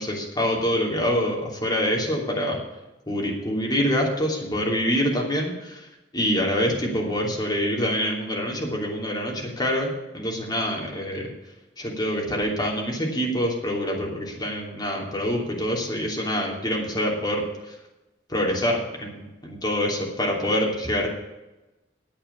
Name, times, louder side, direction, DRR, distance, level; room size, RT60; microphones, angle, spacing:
voice 1, 0.0-2.6 3.1-5.9 6.1-11.3 11.8-17.7 18.3-21.1, equal, 25° left, -2 dB, 3.0 m, -26 dB
9.0 x 8.7 x 8.4 m, 1.0 s
head